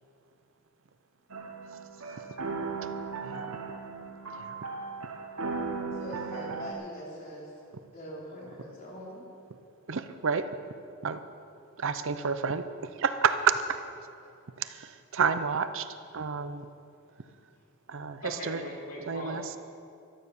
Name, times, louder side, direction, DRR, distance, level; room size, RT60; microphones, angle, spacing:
sound 1, 1.3-6.7, right 4 dB, 85° right, 1.3 m, -37 dB
voice 1, 6.0-7.4 7.9-9.2, equal, 45° left, -6 dB, 4.1 m, -42 dB
voice 2, 9.9-10.4 11.0-11.2 11.8-12.6 13.0-13.8 15.1-15.8 16.1-16.6 17.9-18.2 18.5-18.6 19.1-19.4, right 6 dB, 60° right, 11 dB, 0.6 m, -28 dB
voice 3, 18.2-19.6, left 1 dB, 85° left, -5 dB, 2.8 m, -40 dB
13.5 x 9.5 x 7.0 m, 2.5 s
head